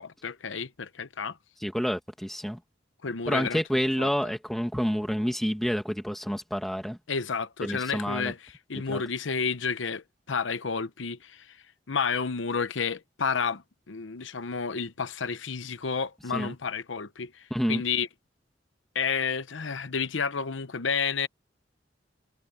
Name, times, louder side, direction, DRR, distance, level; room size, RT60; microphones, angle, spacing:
voice 1, 0.0-1.4 3.0-3.6 4.0-4.1 7.1-11.6 11.9-18.1 18.9-21.3, left 5 dB, 85° left, 0.9 m, -31 dB
voice 2, 1.6-2.6 3.3-7.0 7.6-8.3 8.9-9.0 16.3-16.5 17.5-17.8, equal, ahead, 1.8 m, -28 dB
head